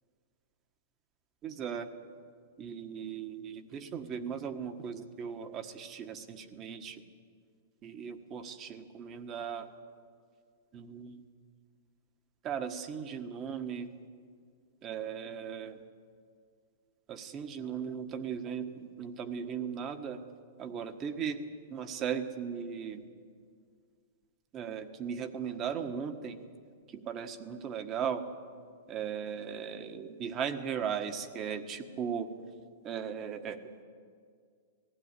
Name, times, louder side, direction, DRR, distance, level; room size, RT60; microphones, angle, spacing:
voice 1, 1.4-1.9 2.6-7.0 7.8-9.7 10.7-11.2 12.4-13.9 14.8-15.8 17.1-20.2 20.6-23.0 24.5-26.4 26.9-28.2 28.9-32.3 32.8-33.6, right 7 dB, 30° right, 8 dB, 1.5 m, -37 dB
19.0 x 16.0 x 9.9 m, 2.1 s
hypercardioid pair, 140°, 0 cm